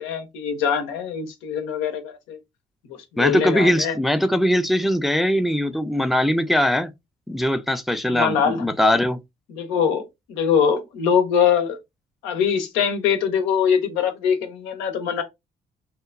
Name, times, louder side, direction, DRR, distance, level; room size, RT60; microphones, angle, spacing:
voice 1, 0.0-2.4 2.9-4.0 8.1-8.6 9.5-11.8 12.2-15.2, left 7 dB, 85° left, 0.6 m, -23 dB
voice 2, 3.2-6.9 7.3-9.2, equal, ahead, 0.4 m, -21 dB
2.9 x 2.2 x 2.3 m
supercardioid pair, 50°, 20 cm